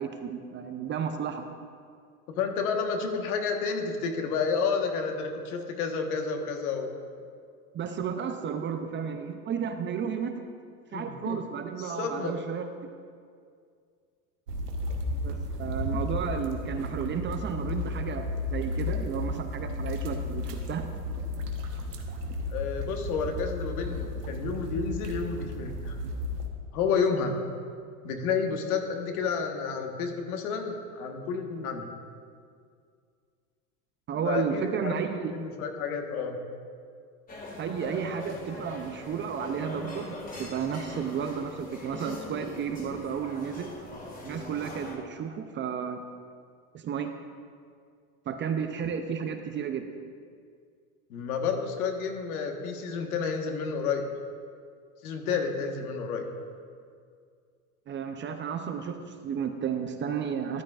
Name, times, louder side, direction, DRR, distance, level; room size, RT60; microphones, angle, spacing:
voice 1, 0.0-1.5 7.7-10.5 10.9-12.7 15.1-20.9 34.1-35.3 37.6-40.1 40.4-43.7 44.2-46.0 46.7-47.1 48.3-49.9 57.9-60.6, right 7 dB, 25° right, 6 dB, 0.5 m, -32 dB
voice 2, 2.3-6.9 10.9-11.4 11.8-12.3 22.5-26.0 26.7-27.3 28.0-31.9 34.2-34.9 35.3-36.4 51.1-54.0 55.0-56.2, left 5 dB, 70° left, 3 dB, 1.5 m, -30 dB
sound 1, 14.5-26.5, left 2 dB, 90° right, 1.2 m, -33 dB
sound 2, 37.3-45.0, left 2 dB, 20° left, 2.1 m, -41 dB
13.5 x 10.5 x 2.5 m, 2.2 s
hypercardioid pair, 95°, 46 cm